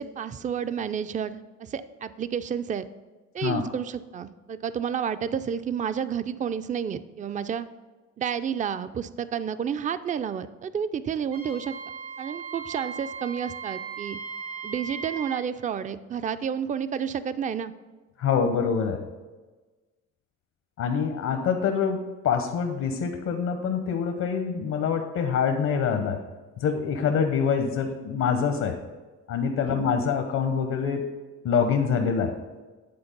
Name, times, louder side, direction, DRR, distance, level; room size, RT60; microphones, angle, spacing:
voice 1, 0.0-2.8 3.3-7.7 8.2-11.7 12.2-14.2 14.6-17.7 29.6-29.9, right 7 dB, 25° right, 13 dB, 0.4 m, -30 dB
Wind instrument woodwind instrument, 11.3-15.4, right 6 dB, 85° right, 2.6 m, -37 dB
voice 2, 18.2-19.0 20.8-26.2 26.6-28.8 29.3-31.1 31.4-32.3, left 6 dB, 70° left, 5 dB, 0.9 m, -25 dB
9.7 x 4.0 x 5.2 m, 1.3 s
cardioid pair, 90°, 30 cm